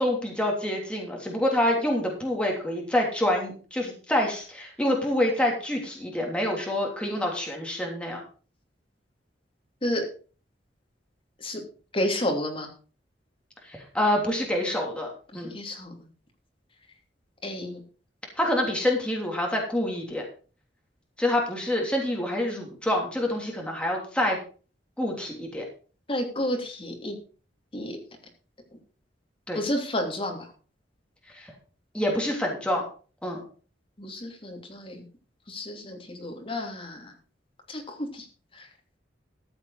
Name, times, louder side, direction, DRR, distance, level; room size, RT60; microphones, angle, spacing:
voice 1, 0.0-8.2 13.6-15.5 18.4-20.2 21.2-24.4 25.0-25.6 29.5-29.6 31.3-31.5 31.9-32.8 33.2-33.4, left 1 dB, 5° left, 0 dB, 3.2 m, -27 dB
voice 2, 11.9-12.7 15.3-16.1 17.4-17.8 26.1-27.2 27.7-28.0 29.5-30.5 34.0-35.0 35.5-37.1 37.7-38.3 38.5-38.7, left 1 dB, 30° left, 2 dB, 2.9 m, -31 dB
14.0 x 7.4 x 4.9 m, 0.38 s
head